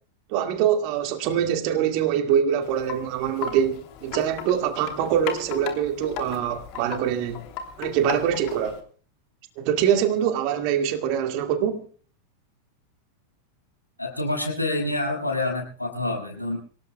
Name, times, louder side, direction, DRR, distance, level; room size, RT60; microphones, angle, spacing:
voice 1, 0.3-7.4 7.8-8.8 9.6-11.8, right 9 dB, 45° right, 2.1 m, -24 dB
Wind chime, 2.6-8.8, left 8 dB, 45° left, 2.9 m, -37 dB
voice 2, 14.0-16.6, left 2 dB, 85° left, 6.2 m, -27 dB
26.5 x 18.0 x 2.3 m
figure-of-eight pair, 90°, 0 cm